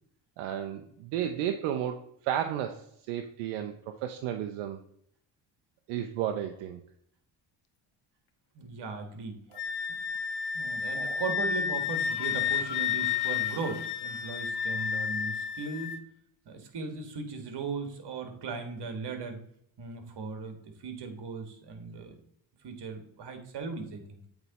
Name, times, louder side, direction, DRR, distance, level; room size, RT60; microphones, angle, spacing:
voice 1, 0.4-3.7 4.0-4.8 5.9-6.8 9.5-9.6 10.9-11.2, right 10 dB, 85° right, 5 dB, 0.7 m, -33 dB
voice 2, 8.6-9.4 10.5-15.9 16.5-19.4 19.8-20.6 20.8-22.2 22.6-24.2, right 4 dB, 55° right, 6 dB, 1.7 m, -38 dB
Wind instrument woodwind instrument, 9.6-16.0, left 7 dB, 50° left, 0.9 m, -31 dB
8.1 x 3.5 x 4.1 m, 0.70 s
supercardioid pair, 70°, 49 cm